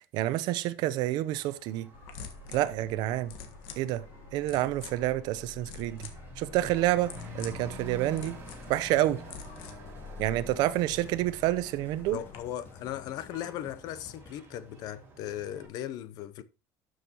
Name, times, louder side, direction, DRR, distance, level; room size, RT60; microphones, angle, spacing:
voice 1, 0.0-1.9 2.5-3.3 3.8-4.0 4.3-6.1 6.4-8.4 8.7-9.2 10.2-12.2, right 15 dB, 55° right, 0.7 m, -28 dB
Truck / Accelerating revving vroom, 1.2-15.7, right 1 dB, 25° right, 3.0 m, -49 dB
sound 1, 1.9-12.4, left 5 dB, 70° left, 1.5 m, -47 dB
sound 2, 7.0-14.3, left 5 dB, 25° left, 1.1 m, -53 dB
voice 2, 12.1-16.4, left 12 dB, 50° left, 0.7 m, -38 dB
12.0 x 6.5 x 3.0 m
cardioid pair, 155°, 8 cm